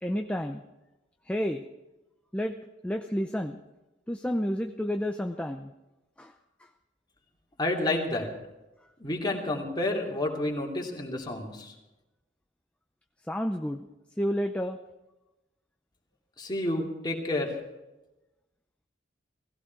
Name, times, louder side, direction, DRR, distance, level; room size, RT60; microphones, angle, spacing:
voice 1, 0.0-0.6 1.3-1.6 2.3-2.5 2.8-3.6 4.1-5.7 6.2-6.3 13.3-13.9 14.2-14.8, equal, 5° left, 4 dB, 0.6 m, -30 dB
voice 2, 7.6-8.3 9.0-11.7 16.4-17.5, left 2 dB, 25° left, 0 dB, 2.8 m, -30 dB
18.0 x 16.0 x 4.7 m, 1.0 s
head